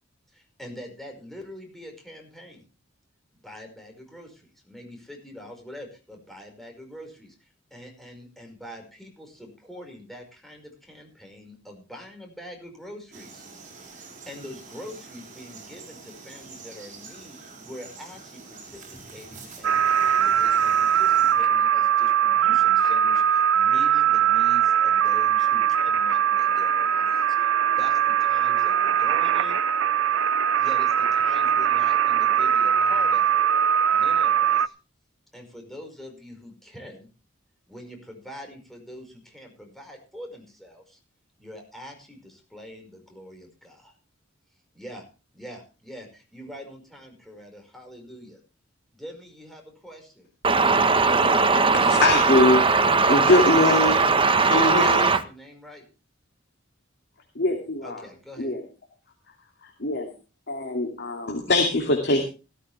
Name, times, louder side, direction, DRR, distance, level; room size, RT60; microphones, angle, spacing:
voice 1, 0.3-2.6 3.4-13.5 13.9-29.6 30.1-30.2 30.6-33.4 33.9-34.7 35.3-37.1 37.7-41.0 41.4-44.0 44.7-45.0 45.3-48.4 48.9-50.3 55.2-55.9 57.8-58.5, equal, ahead, 5.3 m, -44 dB
Frog, 13.1-21.3, right 4 dB, 40° right, 5.7 m, -45 dB
sound 1, 19.6-34.7, right 9 dB, 80° right, 0.6 m, -21 dB
voice 2, 50.4-55.2, right 4 dB, 25° right, 1.2 m, -19 dB
voice 3, 51.8-52.6 53.1-54.1 54.5-55.1 57.3-58.1 58.4-58.6 59.6-60.1 60.5-62.3, left 2 dB, 55° left, 2.7 m, -22 dB
16.0 x 13.5 x 3.4 m
head